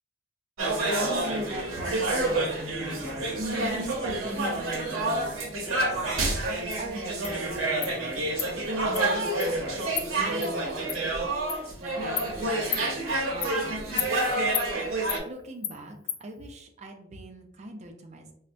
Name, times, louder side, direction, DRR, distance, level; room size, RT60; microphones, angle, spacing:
sound 1, 0.6-15.2, right 2 dB, 75° right, 0.7 m, -28 dB
voice 1, 1.0-3.3 3.7-6.1 6.8-9.9 10.2-14.5 15.2-18.3, right 1 dB, 35° right, 3 dB, 0.5 m, -41 dB
Insect, 6.7-6.8 7.2-7.3 7.8-7.9 8.4-8.5 8.9-9.0 9.4-9.5 10.0-10.1 10.4-10.5 10.9-11.0 11.5-11.6 12.2-12.3 12.7-12.9 13.4-13.5 14.0-14.1 14.5-14.7 15.1-15.2 15.6-15.8 16.1-16.2, left 9 dB, 45° left, 0.3 m, -31 dB
4.2 x 2.1 x 2.5 m, 0.70 s
head